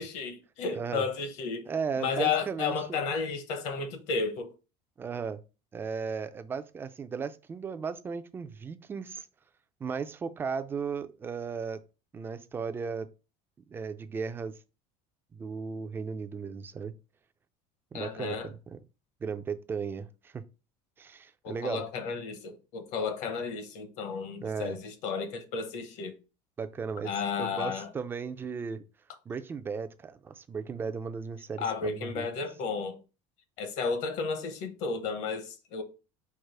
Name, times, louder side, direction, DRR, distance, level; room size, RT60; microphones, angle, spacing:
voice 1, 0.0-1.7 2.0-4.5 17.9-18.5 21.4-26.1 27.0-27.9 31.6-33.0 33.6-35.8, left 5 dB, 55° left, 0.9 m, -33 dB
voice 2, 1.7-3.0 5.0-5.4 5.7-9.3 9.8-11.8 12.1-13.1 13.7-14.5 15.3-16.9 17.9-18.8 19.2-20.4 21.0-21.8 24.4-24.8 26.6-27.1 27.4-28.8 29.3-32.3, right 5 dB, 15° right, 0.3 m, -36 dB
4.7 x 2.4 x 4.7 m
cardioid pair, 155°, 14 cm